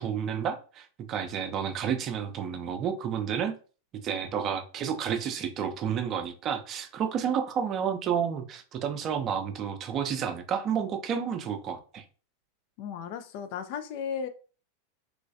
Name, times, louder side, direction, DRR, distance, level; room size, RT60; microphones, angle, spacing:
voice 1, 0.0-3.5 4.0-12.0, right 7 dB, 30° right, 0.5 m, -30 dB
voice 2, 12.8-14.3, left 7 dB, 45° left, 0.4 m, -35 dB
3.1 x 3.0 x 2.6 m
figure-of-eight pair, 90°, 0 cm